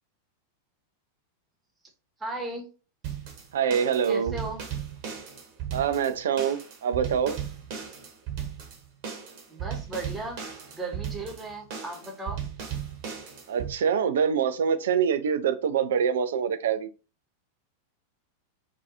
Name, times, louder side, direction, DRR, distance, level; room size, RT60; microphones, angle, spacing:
voice 1, 2.2-2.7 4.1-4.6 9.5-10.4 10.7-12.4, right 2 dB, 10° right, 0.8 m, -36 dB
sound 1, 3.0-13.7, right 8 dB, 45° right, 0.8 m, -36 dB
voice 2, 3.5-4.3 5.7-7.4 13.5-16.9, right 7 dB, 60° right, 0.3 m, -25 dB
2.6 x 2.3 x 2.5 m
figure-of-eight pair, 90°, 0 cm